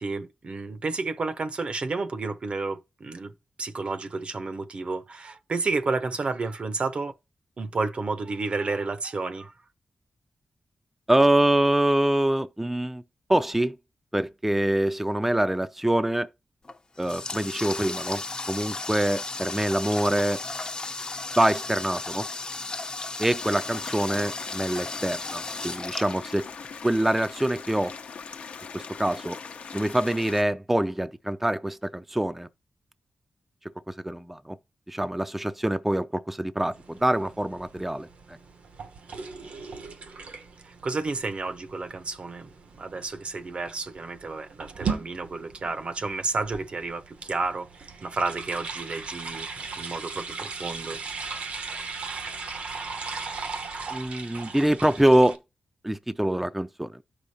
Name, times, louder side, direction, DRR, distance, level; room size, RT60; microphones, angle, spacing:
voice 1, 0.0-3.3 3.6-7.1 7.6-9.5 40.6-47.7 48.0-51.0, right 3 dB, 55° right, 0.8 m, -31 dB
voice 2, 11.1-13.0 13.3-13.8 14.1-16.3 17.0-20.4 21.4-22.3 23.2-26.5 26.8-27.9 28.7-29.4 29.7-32.5 33.9-34.6 34.9-38.4 53.9-55.4 55.8-57.0, right 1 dB, 10° right, 0.5 m, -25 dB
Water tap faucet, 16.6-26.8, left 3 dB, 40° left, 0.8 m, -35 dB
sound 1, 23.4-30.4, left 5 dB, 80° left, 0.8 m, -41 dB
sound 2, 36.7-55.4, right 4 dB, 75° right, 1.0 m, -38 dB
13.0 x 4.9 x 2.7 m
cardioid pair, 60°, 2 cm